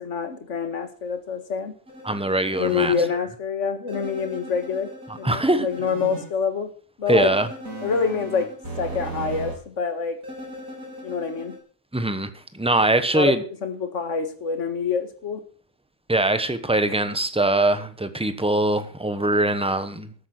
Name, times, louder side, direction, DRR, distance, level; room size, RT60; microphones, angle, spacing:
voice 1, 0.0-1.7 2.6-6.7 7.0-7.3 7.8-8.5 8.8-10.2 11.0-11.5 13.1-13.4 13.6-15.4, left 6 dB, 50° left, 9 dB, 2.0 m, -26 dB
sound 1, 1.9-3.1 3.9-6.3 7.1-9.5 10.2-11.6, right 2 dB, 60° right, 4.2 m, -37 dB
voice 2, 2.0-2.9 5.1-5.7 7.1-7.5 11.9-13.4 16.1-20.1, right 2 dB, 5° right, 11 dB, 0.8 m, -22 dB
14.0 x 8.6 x 6.5 m, 0.42 s
omnidirectional pair, 1.7 m